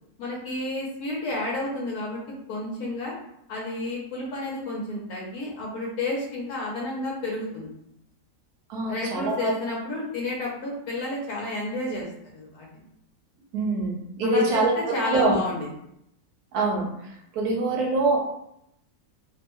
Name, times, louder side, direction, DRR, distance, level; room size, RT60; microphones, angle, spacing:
voice 1, 0.2-2.2 2.5-3.1 3.5-7.7 8.9-12.1 12.3-12.7 14.2-14.6 14.9-15.7, left 2 dB, 65° left, -3 dB, 1.1 m, -31 dB
voice 2, 8.7-9.5 13.5-15.4 16.5-18.2, right 2 dB, 65° right, -1 dB, 1.2 m, -25 dB
3.3 x 2.1 x 2.9 m, 0.77 s
omnidirectional pair, 1.9 m